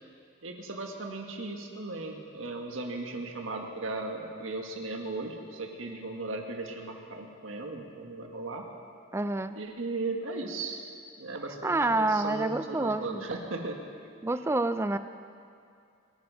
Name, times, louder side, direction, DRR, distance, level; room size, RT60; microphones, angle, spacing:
voice 1, 0.4-8.6 9.5-10.9 11.2-13.8, right 3 dB, 85° right, 2 dB, 1.7 m, -37 dB
voice 2, 9.1-9.6 11.6-13.2 14.2-15.0, right 2 dB, 15° right, 11 dB, 0.4 m, -28 dB
23.0 x 9.6 x 5.6 m, 2.4 s
head